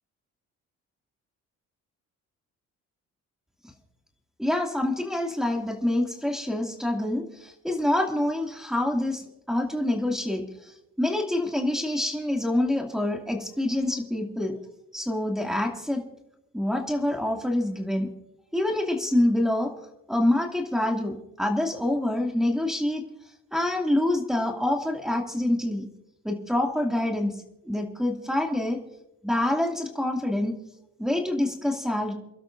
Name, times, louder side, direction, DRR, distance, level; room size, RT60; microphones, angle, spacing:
voice 1, 4.4-10.7 11.0-14.6 14.9-16.0 16.5-18.1 18.5-19.7 20.1-23.0 23.5-25.8 26.2-27.4 27.7-28.8 29.2-30.6 31.0-32.1, left 1 dB, ahead, 0 dB, 2.5 m, -26 dB
28.5 x 12.0 x 2.6 m, 0.88 s
cardioid pair, 90°, 30 cm